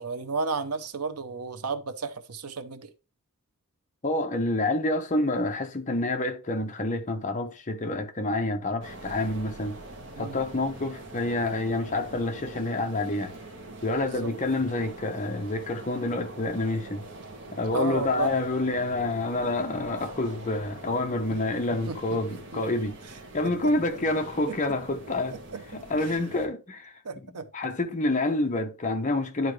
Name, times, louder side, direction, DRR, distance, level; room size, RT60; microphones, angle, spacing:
voice 1, 0.0-2.9 10.2-10.4 14.0-14.3 17.7-18.3 21.3-21.4 21.9-22.6 23.4-23.7 24.5-24.6 25.1-25.6 26.1-26.2 27.0-27.5, right 4 dB, 90° right, 0.8 m, -33 dB
voice 2, 4.0-9.8 10.2-13.3 13.8-17.0 17.5-23.0 23.3-25.4 25.7-26.9 27.5-29.5, left 2 dB, 35° left, 0.8 m, -28 dB
sound 1, 8.8-26.5, right 2 dB, 55° right, 1.4 m, -44 dB
10.5 x 3.8 x 3.2 m
head